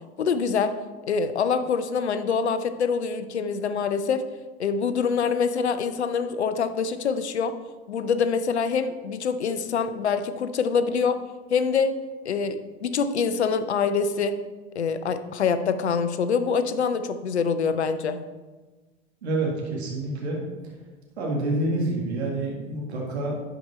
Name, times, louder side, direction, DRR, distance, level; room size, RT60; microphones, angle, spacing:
voice 1, 0.2-0.8 1.1-4.3 4.6-7.6 7.9-11.2 11.5-12.0 12.2-14.4 14.7-18.2, left 5 dB, 90° left, 12 dB, 0.7 m, -25 dB
voice 2, 19.2-20.4 21.2-23.3, right 2 dB, 80° right, -2 dB, 2.0 m, -27 dB
11.5 x 5.0 x 4.2 m, 1.3 s
hypercardioid pair, 90°, 32 cm